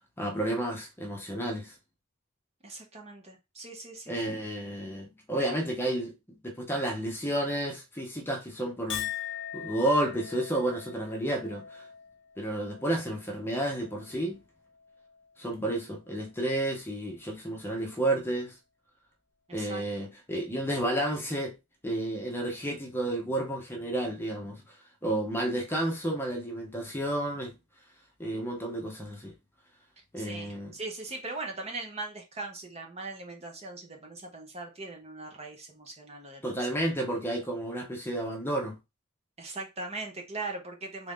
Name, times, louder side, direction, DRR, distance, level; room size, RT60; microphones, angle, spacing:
voice 1, 0.2-1.7 4.1-9.1 9.5-11.8 12.4-14.4 15.4-18.5 19.5-21.5 21.8-24.6 25.0-27.6 28.2-29.3 30.1-30.7 36.4-38.8, right 1 dB, 10° left, 0.8 m, -31 dB
voice 2, 2.6-4.2 19.5-19.8 30.2-37.2 39.4-41.1, right 3 dB, 30° right, 0.8 m, -40 dB
Chink clink, 8.9-15.5 15.8-16.4, left 10 dB, 55° left, 0.8 m, -42 dB
3.6 x 2.7 x 3.6 m
head